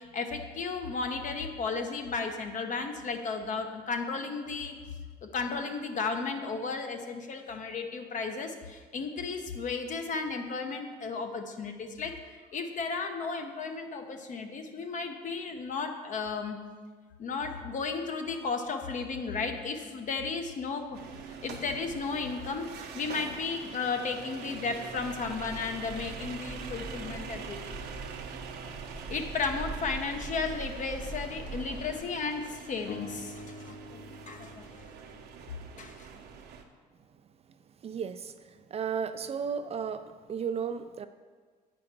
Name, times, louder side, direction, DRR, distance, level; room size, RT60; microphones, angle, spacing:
voice 1, 0.0-4.7 5.2-12.1 12.5-16.6 17.2-21.0 21.4-27.8 29.1-34.7 35.8-36.1, left 4 dB, 50° left, 5 dB, 1.0 m, -34 dB
sound 1, 20.9-36.6, right 6 dB, 75° right, 0.9 m, -44 dB
Bird, 25.0-32.0, right 2 dB, ahead, 0.8 m, -43 dB
sound 2, 32.9-36.0, left 4 dB, 90° left, 0.7 m, -45 dB
voice 2, 37.8-38.3 38.7-41.1, right 7 dB, 35° right, 10 dB, 0.4 m, -34 dB
9.0 x 5.1 x 5.9 m, 1.5 s
cardioid pair, 110°, 17 cm